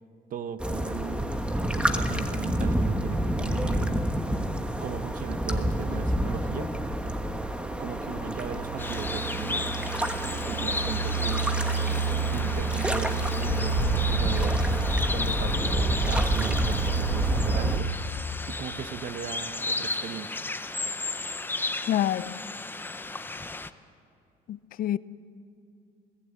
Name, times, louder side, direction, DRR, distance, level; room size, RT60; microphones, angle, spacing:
voice 1, 0.3-1.3 1.8-4.0 4.8-6.7 7.8-9.7 10.2-11.5 12.3-14.6 15.1-17.9 18.5-20.5, right 8 dB, 55° right, 1.0 m, -38 dB
sound 1, 0.6-17.8, equal, 5° right, 1.2 m, -29 dB
sound 2, 6.6-17.9, right 5 dB, 75° right, 3.1 m, -31 dB
sound 3, 8.8-23.7, left 3 dB, 10° left, 0.7 m, -34 dB
voice 2, 21.9-22.4 24.5-25.0, left 12 dB, 55° left, 0.6 m, -27 dB
22.0 x 15.5 x 8.6 m
cardioid pair, 110°, 17 cm